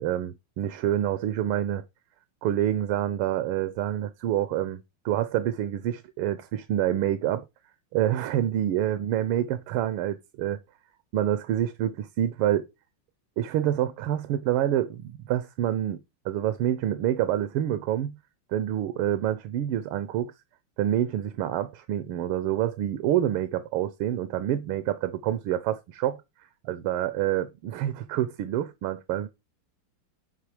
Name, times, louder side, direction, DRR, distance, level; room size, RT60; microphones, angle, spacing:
voice 1, 0.0-1.8 2.4-7.4 7.9-10.6 11.1-12.7 13.4-18.2 18.5-20.3 20.8-26.2 26.6-29.3, right 11 dB, 85° right, 1.5 m, -27 dB
9.4 x 3.5 x 4.8 m
omnidirectional pair, 2.3 m